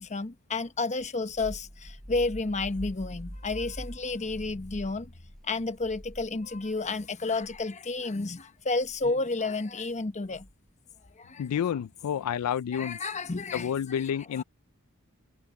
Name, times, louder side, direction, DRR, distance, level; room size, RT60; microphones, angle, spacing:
voice 1, 0.0-5.1 5.4-10.5 11.2-11.4 12.7-14.0 14.4-14.5, left 3 dB, 30° left, 0.9 m, -31 dB
sound 1, 1.0-6.9 7.3-7.6 8.8-9.1 10.3-10.7, equal, ahead, 7.6 m, -44 dB
voice 2, 11.4-13.0 13.5-14.4, left 8 dB, 85° left, 0.3 m, -29 dB
head